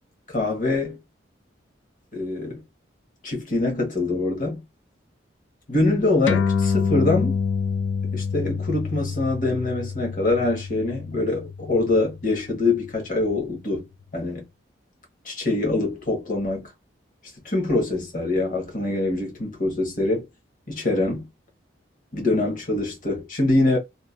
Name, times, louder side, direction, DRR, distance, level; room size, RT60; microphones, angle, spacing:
voice 1, 0.3-1.0 2.1-2.6 3.2-4.6 5.7-7.4 8.1-13.9 14.1-14.4 15.2-16.7 17.4-20.3 20.7-21.3 22.1-23.8, left 2 dB, 45° left, 1.3 m, -24 dB
sound 1, 6.3-13.1, left 5 dB, 80° left, 0.4 m, -27 dB
2.9 x 2.4 x 2.4 m
head